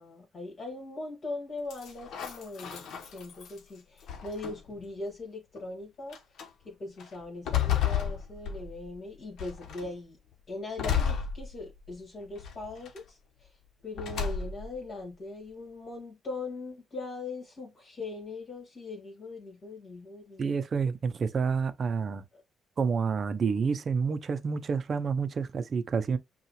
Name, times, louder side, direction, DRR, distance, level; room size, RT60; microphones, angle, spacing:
voice 1, 0.0-6.2 6.7-10.2 10.5-13.5 13.8-20.6 22.3-22.4, left 2 dB, 50° left, 2.0 m, -40 dB
sound 1, 1.7-3.6 4.1-4.8 5.6-5.7 6.1-6.5 7.0-8.9 9.4-9.9 10.8-11.9 12.4-13.0 13.9-14.8, left 8 dB, 75° left, 1.0 m, -32 dB
voice 2, 20.4-22.2 22.8-26.2, right 5 dB, 45° right, 0.6 m, -29 dB
5.5 x 2.4 x 3.1 m
cardioid pair, 90°, 0 cm